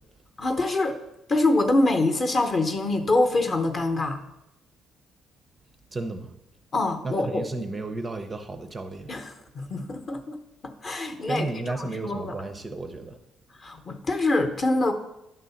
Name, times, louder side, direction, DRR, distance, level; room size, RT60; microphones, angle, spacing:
voice 1, 0.4-1.0 1.3-4.2 6.7-7.5 9.1-10.4 10.6-12.4 13.6-14.9, left 2 dB, 30° left, 6 dB, 0.8 m, -25 dB
voice 2, 5.9-6.3 7.0-9.1 11.3-13.2, right 3 dB, 20° right, 7 dB, 0.5 m, -33 dB
10.5 x 3.7 x 6.9 m, 0.90 s
cardioid pair, 170°, 0 cm